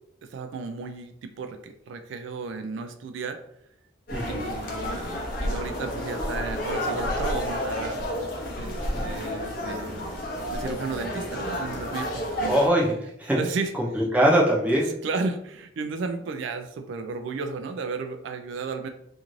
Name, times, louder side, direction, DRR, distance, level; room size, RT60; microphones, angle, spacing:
voice 1, 0.2-3.4 4.2-8.0 8.6-10.2 10.5-12.6 13.3-13.7 14.9-18.9, right 4 dB, 75° right, 7 dB, 0.3 m, -34 dB
sound 1, 4.1-12.7, equal, 50° left, 0.5 m, -30 dB
voice 2, 4.1-4.5 8.9-9.0 12.5-12.9 13.2-13.4 13.8-14.9, equal, 5° right, -4 dB, 0.5 m, -22 dB
2.5 x 2.4 x 3.0 m, 0.76 s
head